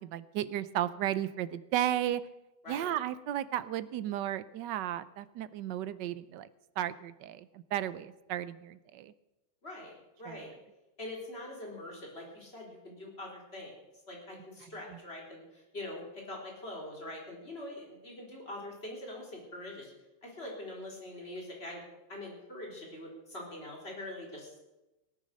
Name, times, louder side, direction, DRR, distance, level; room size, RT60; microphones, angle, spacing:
voice 1, 0.0-2.2 2.7-6.5 6.8-9.1 10.3-10.5 14.6-15.0, right 12 dB, 70° right, 15 dB, 1.2 m, -34 dB
voice 2, 9.6-10.5 11.0-13.7 14.1-19.9 20.2-21.8 22.1-24.6, left 1 dB, 30° left, -1 dB, 4.1 m, -44 dB
18.0 x 9.6 x 6.5 m, 1.0 s
omnidirectional pair, 2.1 m